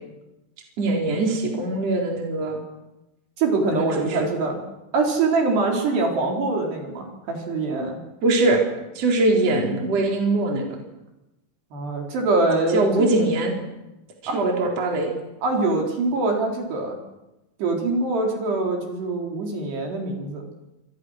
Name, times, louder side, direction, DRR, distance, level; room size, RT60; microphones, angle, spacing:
voice 1, 0.8-2.6 3.7-4.3 8.2-8.6 8.9-10.6 12.7-13.6 14.3-15.1, right 2 dB, 35° right, 0 dB, 4.8 m, -22 dB
voice 2, 3.4-4.6 4.9-8.0 11.7-12.9 14.3-14.4 15.4-17.0 17.6-20.4, right 3 dB, 60° right, 1 dB, 5.8 m, -24 dB
28.0 x 26.0 x 6.4 m, 0.97 s
omnidirectional pair, 5.4 m